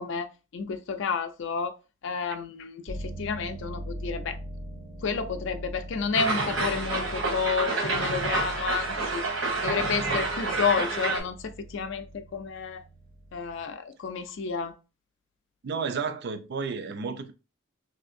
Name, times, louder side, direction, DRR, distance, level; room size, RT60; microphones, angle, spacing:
voice 1, 0.0-1.7 2.0-4.4 5.0-9.2 9.6-12.8 13.3-14.8, left 5 dB, 65° left, 0.4 m, -30 dB
sound 1, 2.9-13.6, equal, 90° right, 1.5 m, -42 dB
sound 2, 6.1-11.2, right 3 dB, 70° right, 1.0 m, -29 dB
voice 2, 15.6-17.3, right 5 dB, 55° right, 0.4 m, -32 dB
3.3 x 2.6 x 2.6 m
head